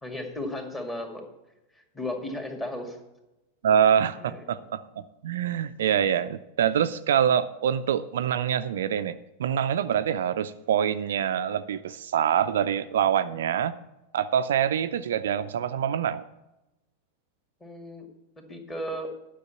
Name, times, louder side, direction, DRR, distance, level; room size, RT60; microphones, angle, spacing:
voice 1, 0.0-1.2 1.7-3.0 4.2-4.7 17.6-18.1 18.4-19.1, left 1 dB, 15° left, 3 dB, 2.2 m, -35 dB
voice 2, 3.6-4.8 5.2-13.7 14.1-16.2, right 9 dB, 60° right, 12 dB, 0.4 m, -25 dB
10.5 x 6.4 x 7.0 m, 0.96 s
figure-of-eight pair, 90°, 0 cm